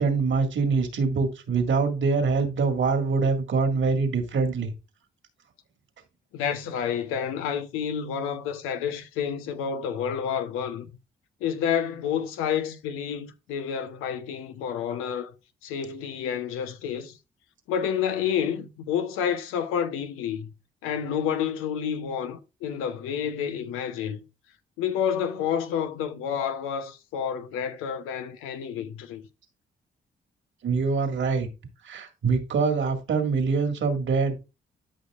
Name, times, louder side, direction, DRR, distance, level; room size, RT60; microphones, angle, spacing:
voice 1, 0.0-4.7 30.6-31.5 31.8-34.4, right 4 dB, 65° right, 2.0 m, -24 dB
voice 2, 6.3-10.9 11.4-15.3 15.6-17.2 17.7-20.5 20.8-24.2 24.8-29.2, left 8 dB, 85° left, 0.9 m, -29 dB
13.0 x 5.5 x 2.4 m
supercardioid pair, 45°, 21 cm